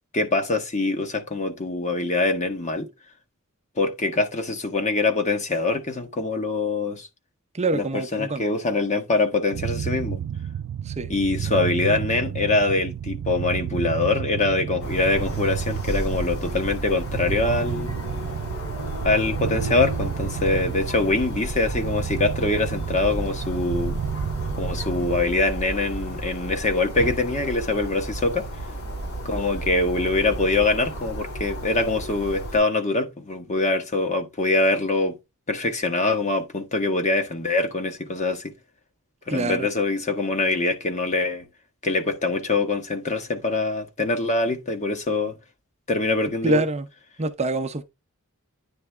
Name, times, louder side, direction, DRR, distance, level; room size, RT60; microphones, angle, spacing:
voice 1, 0.1-2.9 3.8-7.1 7.7-10.2 11.1-18.0 19.0-24.0 24.6-28.5 29.2-35.2 35.5-38.5 39.3-41.5 41.8-45.3 45.9-46.6, left 3 dB, 35° left, 1.2 m, -24 dB
voice 2, 7.5-8.4 10.9-11.1 39.3-39.7 46.4-46.9 47.2-47.8, right 2 dB, 30° right, 0.7 m, -25 dB
sound 1, 9.5-25.2, right 9 dB, 80° right, 0.3 m, -31 dB
sound 2, 14.8-32.6, right 1 dB, 75° left, 4.3 m, -33 dB
9.6 x 3.4 x 3.3 m
head